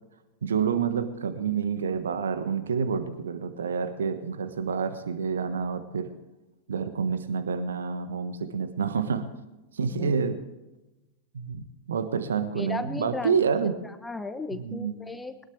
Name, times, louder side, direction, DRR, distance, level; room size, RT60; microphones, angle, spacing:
voice 1, 0.4-6.1 6.7-9.3 9.7-10.4 11.3-13.7 14.5-15.0, right 6 dB, 65° right, 10 dB, 1.4 m, -28 dB
voice 2, 12.5-13.4 13.6-15.5, left 3 dB, 10° left, 9 dB, 1.2 m, -35 dB
21.5 x 19.5 x 3.3 m, 1.0 s
figure-of-eight pair, 90°, 0 cm